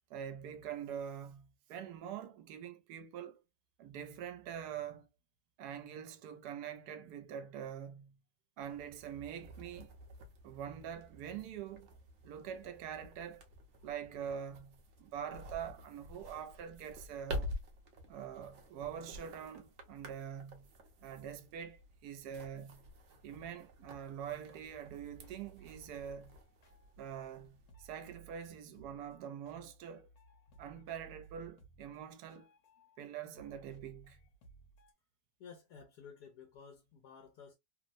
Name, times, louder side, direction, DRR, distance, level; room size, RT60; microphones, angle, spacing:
voice 1, 0.1-3.4 3.8-5.1 5.6-8.2 8.6-9.9 10.4-11.9 12.2-13.5 13.8-17.5 18.1-20.7 21.0-22.8 23.2-26.4 27.0-30.1 30.6-32.5 33.0-34.2, right 8 dB, 80° right, 1.1 m, -45 dB
sound 1, 8.6-27.7, equal, 60° right, 0.8 m, -49 dB
sound 2, 24.5-24.6 24.8-27.4 27.7-33.0 33.3-34.9, right 5 dB, 65° left, 1.3 m, -60 dB
voice 2, 35.4-37.5, left 6 dB, 85° left, 1.2 m, -54 dB
3.0 x 2.0 x 2.4 m
omnidirectional pair, 1.7 m